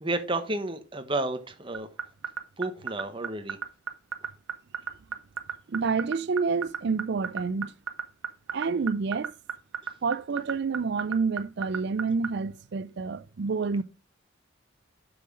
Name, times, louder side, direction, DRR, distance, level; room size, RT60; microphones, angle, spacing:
voice 1, 0.0-1.9 2.6-3.6, right 2 dB, 25° right, 1.0 m, -31 dB
sound 1, 1.7-12.3, right 7 dB, 75° right, 1.1 m, -31 dB
voice 2, 5.7-7.7 8.5-9.3 10.0-13.8, right 4 dB, 55° right, 0.4 m, -28 dB
7.7 x 5.8 x 5.0 m
head